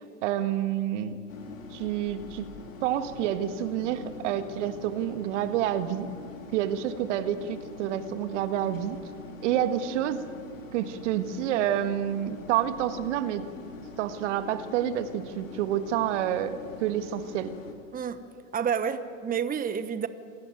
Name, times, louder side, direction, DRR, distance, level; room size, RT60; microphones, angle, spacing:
voice 1, 0.2-1.2 1.7-2.5 2.8-6.1 6.5-9.0 9.4-10.2 10.7-13.4 14.0-17.5, right 11 dB, 65° right, 10 dB, 1.7 m, -28 dB
sound 1, 1.3-17.7, left 3 dB, 85° left, 3.0 m, -44 dB
voice 2, 18.5-20.1, right 7 dB, 20° right, 12 dB, 1.1 m, -29 dB
26.5 x 17.0 x 9.1 m, 2.2 s
hypercardioid pair, 85°, 38 cm